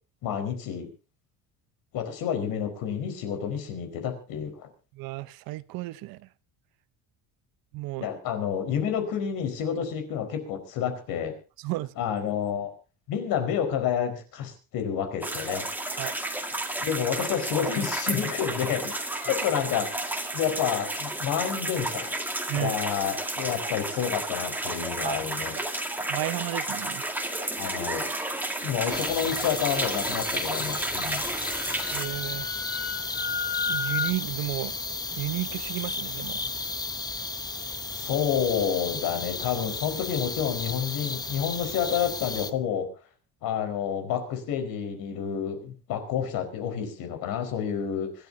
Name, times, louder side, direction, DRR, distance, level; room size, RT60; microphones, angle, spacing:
voice 1, 0.2-0.9 1.9-4.7 8.0-11.4 12.0-12.7 13.1-15.7 16.8-19.9 20.3-22.2 22.5-25.6 27.6-28.1 28.6-31.2 37.9-42.9 43.4-48.3, left 8 dB, 75° left, 4.6 m, -29 dB
voice 2, 5.0-6.2 7.7-8.1 11.6-11.9 16.0-16.1 22.5-22.7 25.0-25.2 26.1-27.0 31.9-32.5 33.7-34.7 35.1-36.4, right 18 dB, 75° right, 1.0 m, -32 dB
sound 1, 15.2-32.1, right 1 dB, 5° right, 2.0 m, -32 dB
sound 2, 28.9-42.5, left 3 dB, 10° left, 0.7 m, -34 dB
Wind instrument woodwind instrument, 31.2-34.1, left 5 dB, 35° left, 2.4 m, -32 dB
25.5 x 13.0 x 2.7 m
cardioid pair, 135°, 35 cm